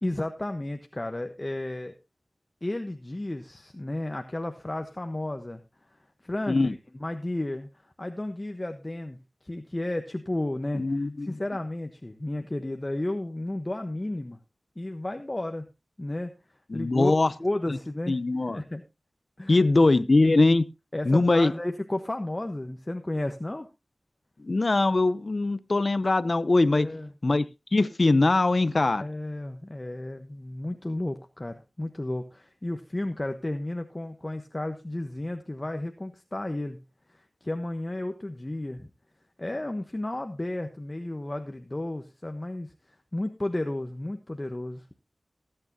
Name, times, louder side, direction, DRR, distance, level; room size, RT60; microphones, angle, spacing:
voice 1, 0.0-1.9 2.6-5.6 6.2-6.7 7.0-14.4 14.8-15.7 16.0-16.3 16.7-17.1 17.4-18.2 18.5-18.8 19.4-19.6 20.9-23.7 26.7-27.1 29.0-36.8 37.1-38.9 39.4-44.9, left 1 dB, 30° left, 1.1 m, -33 dB
voice 2, 10.7-11.3 16.7-17.3 18.1-18.6 19.5-20.6 21.0-21.5 24.4-26.9 27.2-27.4 27.7-29.1, left 2 dB, 55° left, 0.8 m, -22 dB
19.5 x 8.9 x 2.8 m
wide cardioid pair, 50°, 0 cm